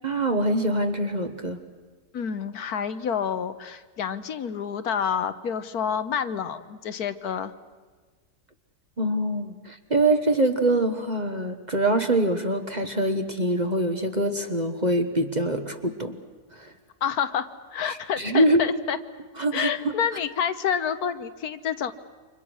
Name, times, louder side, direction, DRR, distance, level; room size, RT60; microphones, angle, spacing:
voice 1, 0.0-1.6 9.0-16.2 16.5-16.7 17.9-18.6 19.4-19.7, right 1 dB, 30° right, 7 dB, 1.2 m, -24 dB
voice 2, 2.1-7.5 17.0-19.0 19.5-21.9, left 7 dB, 70° left, 11 dB, 1.4 m, -28 dB
29.5 x 25.0 x 6.3 m, 1.4 s
omnidirectional pair, 1.7 m